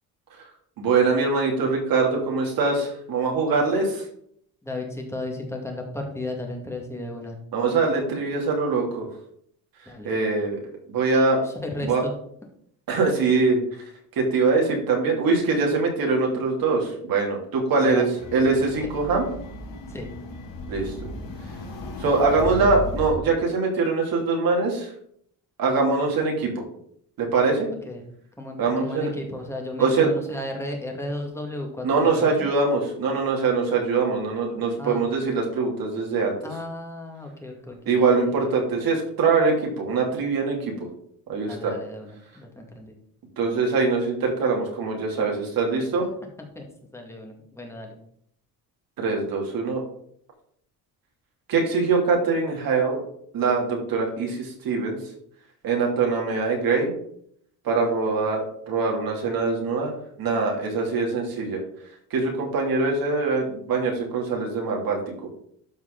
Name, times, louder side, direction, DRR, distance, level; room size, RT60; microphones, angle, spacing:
voice 1, 0.8-4.1 7.5-9.1 10.0-10.6 10.9-11.4 11.8-12.0 12.9-13.6 14.1-18.1 18.3-19.3 20.7-20.9 22.0-24.9 25.6-26.6 27.2-27.7 28.6-29.1 29.8-30.1 31.8-36.3 37.9-40.9 41.3-41.7 43.4-46.1 49.0-49.8 51.5-53.0 53.3-55.0 55.6-56.9 57.6-61.6 62.1-65.3, right 4 dB, 65° right, 0 dB, 2.9 m, -23 dB
voice 2, 4.6-7.4 9.9-10.1 11.4-12.1 17.8-18.0 19.9-20.1 27.9-28.1 28.4-32.5 34.8-35.1 36.4-38.5 41.5-42.9 46.6-46.7 46.9-48.0, left 1 dB, 5° left, 1 dB, 2.1 m, -34 dB
sound 1, 18.2-23.1, left 2 dB, 60° left, 3.7 m, -35 dB
12.5 x 4.7 x 3.9 m, 0.66 s
cardioid pair, 120°, 38 cm